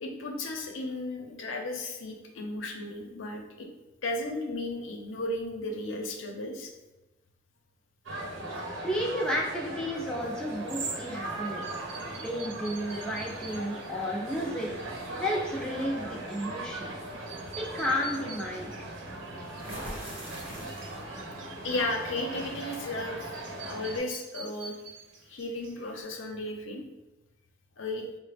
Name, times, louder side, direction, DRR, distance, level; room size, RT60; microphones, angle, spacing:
voice 1, 0.0-3.7 4.0-6.7 19.3-19.9 20.5-20.7 21.6-23.3 23.7-24.8 25.2-26.8 27.8-28.1, left 2 dB, 80° left, 2 dB, 0.6 m, -35 dB
sound 1, 8.0-24.0, right 1 dB, 90° right, 0.8 m, -39 dB
voice 2, 8.8-11.9 12.2-14.7 15.2-16.9 17.6-18.8, equal, 5° left, -4 dB, 0.5 m, -32 dB
sound 2, 10.2-26.0, right 5 dB, 65° right, 0.5 m, -47 dB
sound 3, 12.9-13.5 14.9-15.1 15.5-15.8 19.5-21.2, equal, 30° right, 0.9 m, -41 dB
4.5 x 2.0 x 3.4 m, 1.0 s
head